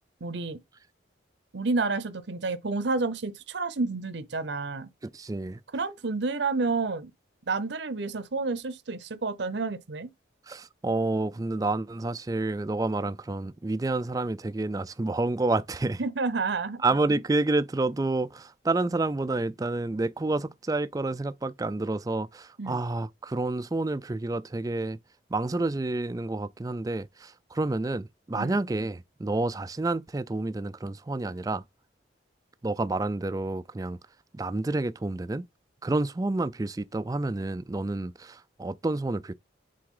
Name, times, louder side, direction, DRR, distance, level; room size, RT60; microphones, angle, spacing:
voice 1, 0.2-0.6 1.5-4.9 5.7-7.1 7.5-10.1 16.0-16.8 22.6-22.8 28.4-28.6, right 3 dB, 70° right, 0.8 m, -30 dB
voice 2, 5.0-5.6 10.5-16.0 16.8-25.0 25.3-31.6 32.6-34.0 34.3-35.4 35.8-39.4, right 2 dB, 20° right, 0.3 m, -29 dB
7.7 x 3.6 x 3.8 m
head